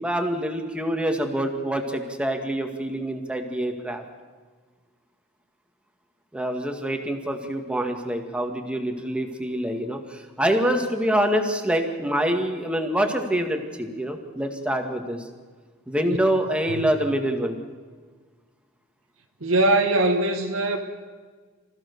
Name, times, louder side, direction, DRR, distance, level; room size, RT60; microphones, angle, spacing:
voice 1, 0.0-4.0 6.3-15.3 15.9-17.6, right 1 dB, 5° right, 4 dB, 2.1 m, -26 dB
voice 2, 19.4-20.8, right 2 dB, 85° right, 2 dB, 1.7 m, -21 dB
25.0 x 15.5 x 7.0 m, 1.5 s
head